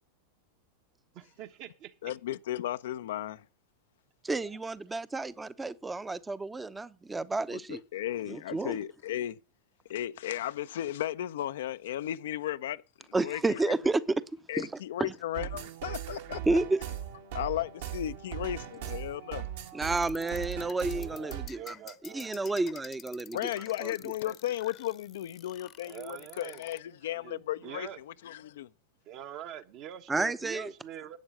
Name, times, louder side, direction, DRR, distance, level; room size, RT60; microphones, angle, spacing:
voice 1, 1.1-2.1 20.8-22.4 25.8-26.6 27.2-28.0 29.1-31.2, right 10 dB, 40° right, 1.2 m, -44 dB
voice 2, 2.0-3.4 7.5-9.4 9.9-12.8 13.2-13.7 14.5-16.4 17.3-19.5 23.3-28.7, left 12 dB, 60° left, 0.5 m, -35 dB
voice 3, 4.2-7.8 8.3-8.8 13.1-14.0 14.6-14.7 16.5-16.8 19.7-21.7 22.0-23.4 23.8-23.9 30.1-30.7, right 2 dB, 10° right, 0.8 m, -31 dB
sound 1, 15.3-21.5, right 11 dB, 55° right, 1.8 m, -39 dB
sound 2, 20.0-26.8, left 11 dB, 30° left, 0.9 m, -50 dB
11.5 x 8.9 x 6.4 m
figure-of-eight pair, 90°, 0 cm